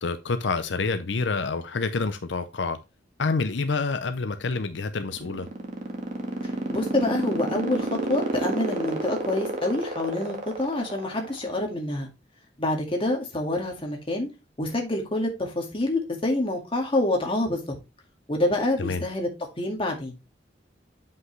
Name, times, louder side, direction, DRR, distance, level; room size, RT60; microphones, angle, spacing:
voice 1, 0.0-2.8 3.2-5.5 18.8-19.0, left 4 dB, 85° left, 0.7 m, -27 dB
sound 1, 5.0-11.6, right 1 dB, 45° right, 1.6 m, -29 dB
voice 2, 6.7-12.1 12.6-14.3 14.6-17.8 18.3-19.3 19.6-20.2, left 1 dB, 30° left, 1.9 m, -27 dB
7.9 x 5.5 x 3.2 m
head